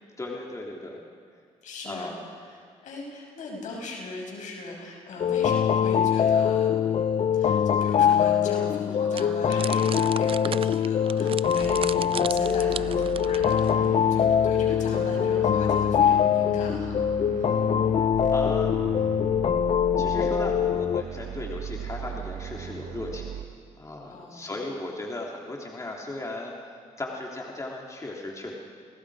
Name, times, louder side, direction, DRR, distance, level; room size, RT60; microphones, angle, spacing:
voice 1, 0.2-1.0 1.8-2.2 18.3-19.1 20.0-23.3 23.8-26.5 27.0-28.5, left 2 dB, 25° left, -1 dB, 3.2 m, -36 dB
voice 2, 1.6-2.1 2.4-13.8 14.1-17.6 24.1-24.6, left 2 dB, 70° left, 0 dB, 6.5 m, -40 dB
sound 1, 5.2-21.0, left 8 dB, 50° left, 0.6 m, -23 dB
sound 2, 9.1-13.9, right 8 dB, 45° right, 0.5 m, -36 dB
sound 3, 11.6-23.4, right 9 dB, 70° right, 1.1 m, -38 dB
29.5 x 19.5 x 5.0 m, 2.1 s
cardioid pair, 75°, 13 cm